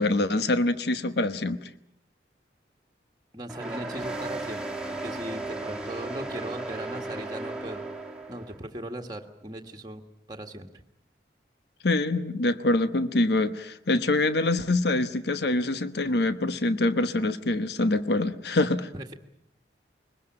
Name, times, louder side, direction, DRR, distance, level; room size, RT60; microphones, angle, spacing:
voice 1, 0.0-1.7 11.8-18.9, left 2 dB, 65° left, 11 dB, 1.1 m, -25 dB
voice 2, 3.3-7.9 8.3-10.0 10.3-10.8 18.9-19.1, right 1 dB, 20° right, 2 dB, 1.7 m, -38 dB
sound 1, 3.5-8.6, right 2 dB, 5° right, 2.0 m, -35 dB
22.5 x 20.0 x 8.8 m, 0.76 s
head